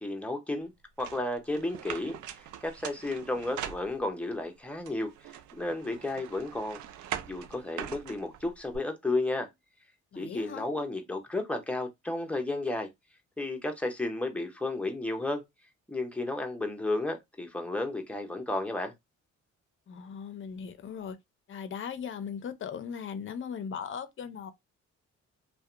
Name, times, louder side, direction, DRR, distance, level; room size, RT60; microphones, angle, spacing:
voice 1, 0.0-0.7 1.0-5.1 5.5-6.8 7.3-9.5 10.2-12.9 13.4-15.4 15.9-18.9, left 2 dB, 5° left, 0.7 m, -33 dB
sound 1, 1.0-4.3 4.9-8.8, right 10 dB, 75° right, 0.5 m, -42 dB
voice 2, 10.1-10.7 19.9-21.2 21.5-24.5, left 7 dB, 40° left, 0.6 m, -38 dB
2.7 x 2.2 x 2.4 m
cardioid pair, 90°, 30 cm